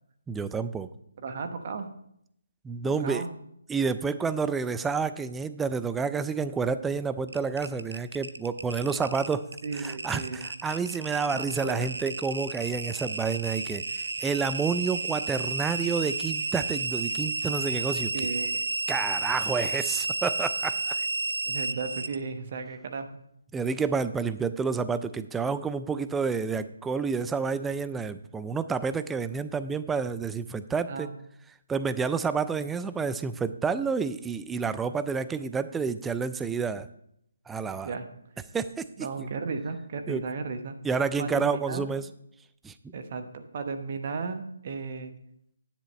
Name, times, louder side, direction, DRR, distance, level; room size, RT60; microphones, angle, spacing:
voice 1, 0.3-0.9 2.6-3.2 3.7-9.4 9.7-13.8 14.2-18.1 18.9-21.0 23.5-31.1 31.7-36.9 37.5-37.9 38.5-38.9 39.2-39.3 40.1-40.2 40.8-42.1 42.6-42.9, right 5 dB, 10° right, 13 dB, 0.3 m, -29 dB
voice 2, 1.2-1.9 2.8-3.3 9.6-10.5 11.3-11.9 18.1-18.6 21.5-23.2 30.9-31.1 37.8-38.0 39.0-40.8 41.2-41.9 42.9-45.1, right 4 dB, 45° right, 7 dB, 1.0 m, -35 dB
sound 1, 7.3-22.2, right 3 dB, 75° right, 0.7 m, -32 dB
10.0 x 7.9 x 3.2 m, 0.74 s
figure-of-eight pair, 150°, 0 cm